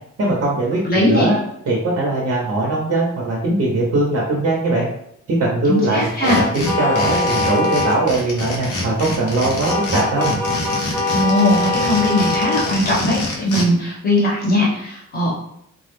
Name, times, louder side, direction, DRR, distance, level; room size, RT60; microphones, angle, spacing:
voice 1, 0.2-0.8 1.1-1.4 1.7-4.9 5.3-10.4, right 2 dB, 50° right, -4 dB, 0.6 m, -20 dB
voice 2, 0.9-1.3 5.7-6.4 11.1-15.3, left 1 dB, 30° left, -5 dB, 0.8 m, -19 dB
sound 1, 6.0-13.6, left 2 dB, 75° left, 0.7 m, -27 dB
sound 2, 6.3-8.0 9.7-12.7, left 2 dB, 10° left, 0.3 m, -22 dB
2.2 x 2.0 x 3.0 m, 0.74 s
wide cardioid pair, 180°, 31 cm